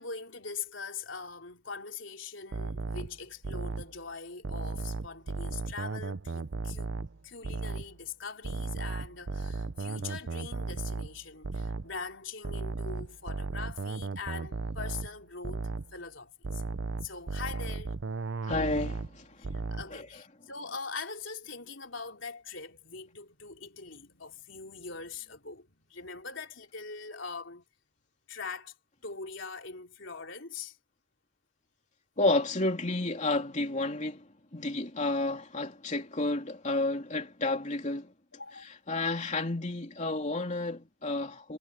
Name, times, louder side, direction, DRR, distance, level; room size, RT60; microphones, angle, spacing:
voice 1, 0.0-6.9 7.2-15.6 15.9-16.6 17.0-18.0 19.5-27.6 28.3-28.7 29.0-30.8 38.3-38.7, left 5 dB, 65° left, 4.0 m, -42 dB
sound 1, 2.5-4.0 4.4-7.2 7.4-8.0 8.4-12.0 12.4-15.2 15.4-16.0 16.4-19.2 19.4-20.0, right 3 dB, 65° right, 0.7 m, -35 dB
voice 2, 18.5-19.3 19.9-20.0 32.2-34.2 34.5-38.1 38.6-41.6, left 2 dB, 40° left, 3.3 m, -31 dB
head